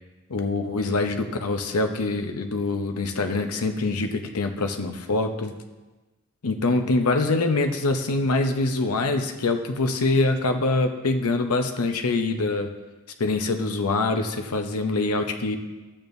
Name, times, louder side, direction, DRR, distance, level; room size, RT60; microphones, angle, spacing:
voice 1, 0.3-5.5 6.4-12.7 13.2-15.6, left 2 dB, 90° left, 6 dB, 0.8 m, -24 dB
12.5 x 8.7 x 2.6 m, 1.2 s
head